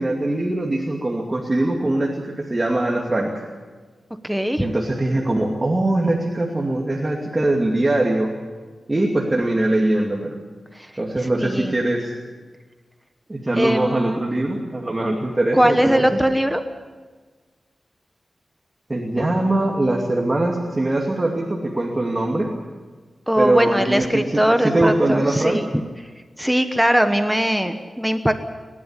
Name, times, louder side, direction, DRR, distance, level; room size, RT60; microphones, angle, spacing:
voice 1, 0.0-3.4 4.6-8.3 8.9-10.3 11.0-12.1 13.3-16.0 18.9-22.5 23.4-25.6, right 1 dB, 25° right, -1 dB, 2.6 m, -22 dB
voice 2, 4.2-4.7 10.7-10.9 11.2-11.7 13.5-14.2 15.5-16.6 23.3-25.7 26.4-28.3, equal, 5° right, 7 dB, 1.2 m, -20 dB
29.0 x 12.0 x 10.0 m, 1.4 s
wide cardioid pair, 100°, 0 cm